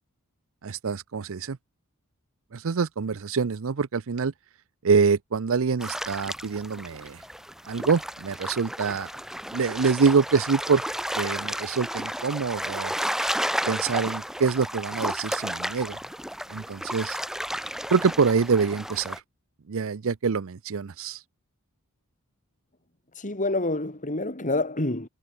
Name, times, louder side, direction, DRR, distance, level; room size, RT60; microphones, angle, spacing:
voice 1, 0.6-1.6 2.5-4.3 4.8-7.2 7.7-9.1 9.5-10.8 11.2-12.9 13.7-16.0 16.5-17.2 17.9-19.2 19.7-21.2, right 5 dB, 65° right, 0.6 m, -25 dB
sound 1, 5.8-19.2, equal, ahead, 5.0 m, -32 dB
voice 2, 23.1-25.1, left 2 dB, 35° left, 3.5 m, -27 dB
head